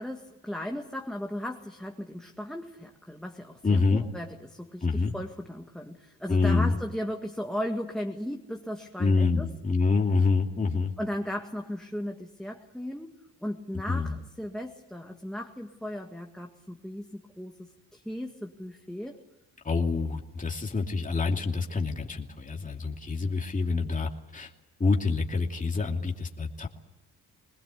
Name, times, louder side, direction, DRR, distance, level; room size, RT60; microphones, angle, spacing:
voice 1, 0.0-9.5 11.0-19.2, equal, ahead, 1 dB, 2.0 m, -36 dB
voice 2, 3.6-4.0 4.8-5.1 6.3-6.7 9.0-10.9 13.9-14.2 19.6-24.5 24.8-26.7, left 4 dB, 25° left, 1 dB, 2.7 m, -26 dB
22.5 x 20.0 x 8.4 m, 1.1 s
cardioid pair, 90°, 33 cm